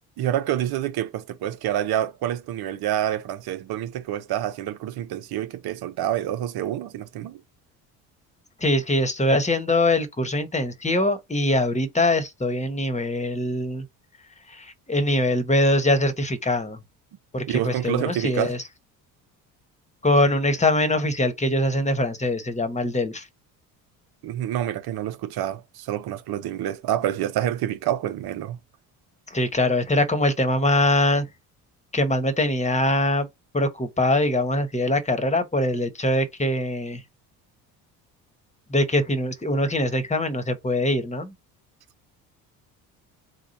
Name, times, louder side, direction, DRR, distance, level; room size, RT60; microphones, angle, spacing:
voice 1, 0.2-7.4 17.5-18.6 24.2-28.6, right 12 dB, 55° right, 0.8 m, -27 dB
voice 2, 8.6-13.8 14.5-16.8 17.3-18.6 20.0-23.2 29.3-31.2 31.9-33.3 33.5-37.0 38.7-41.3, left 1 dB, 15° left, 1.3 m, -23 dB
3.8 x 2.3 x 4.1 m
hypercardioid pair, 65°, 44 cm